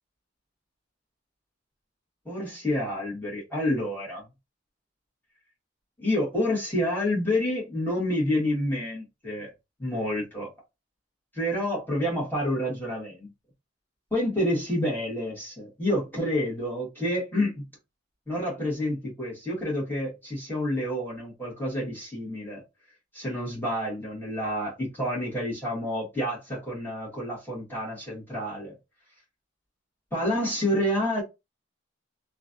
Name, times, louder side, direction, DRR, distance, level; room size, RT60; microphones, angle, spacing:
voice 1, 2.2-4.2 6.0-9.5 9.8-10.5 11.3-13.3 14.1-17.7 18.3-22.6 23.1-28.7 30.1-31.2, left 1 dB, 10° left, 1.5 m, -28 dB
3.0 x 2.4 x 2.6 m
head